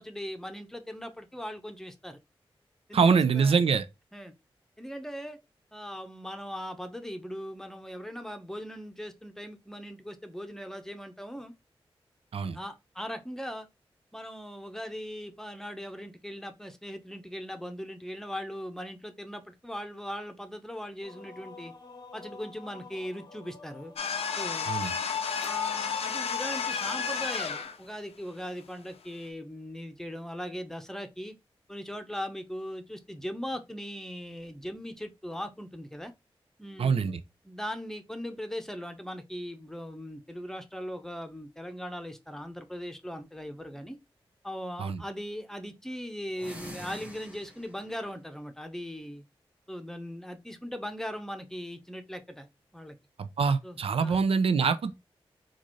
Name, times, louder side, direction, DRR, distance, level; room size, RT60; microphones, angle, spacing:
voice 1, 0.0-2.2 2.9-3.1 3.3-3.6 4.1-4.3 4.8-5.4 5.7-11.5 12.5-13.7 14.1-21.7 22.1-23.9 24.4-24.7 25.4-31.3 31.7-36.1 36.6-37.1 37.4-44.0 44.4-49.2 49.7-52.5 52.7-53.0 53.6-54.2, equal, 5° left, 0.9 m, -39 dB
voice 2, 2.9-3.9 12.3-12.6 24.7-24.9 36.8-37.2 44.8-45.0 53.2-54.9, right 5 dB, 75° right, 0.5 m, -24 dB
sound 1, 21.0-27.6, left 3 dB, 40° left, 0.7 m, -50 dB
sound 2, 24.0-27.8, left 6 dB, 85° left, 0.5 m, -31 dB
sound 3, 46.3-47.9, equal, 15° right, 1.6 m, -45 dB
3.8 x 2.5 x 3.1 m
cardioid pair, 45°, 10 cm